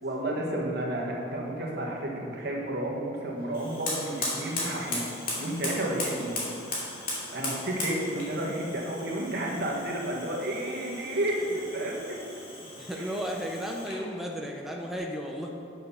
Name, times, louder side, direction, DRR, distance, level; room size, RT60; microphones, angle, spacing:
voice 1, 0.0-5.0 5.4-6.4 7.3-12.2 12.9-13.2, right 1 dB, 60° right, -2 dB, 1.7 m, -31 dB
Fire, 3.5-14.1, left 2 dB, 50° left, 2.6 m, -37 dB
voice 2, 12.6-15.5, equal, ahead, -1 dB, 0.6 m, -35 dB
9.1 x 6.6 x 5.7 m, 2.6 s
head